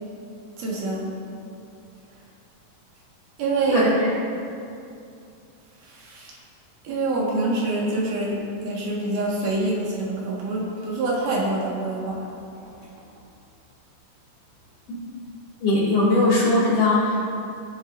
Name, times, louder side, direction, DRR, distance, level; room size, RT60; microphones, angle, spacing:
voice 1, 0.6-1.1 3.4-4.1 5.8-6.4 6.8-12.3 12.6-12.7, right 2 dB, 80° right, -4 dB, 3.3 m, -26 dB
voice 2, 15.6-17.2, left 2 dB, 55° left, -7 dB, 3.3 m, -19 dB
18.5 x 8.2 x 2.6 m, 2.5 s
omnidirectional pair, 3.6 m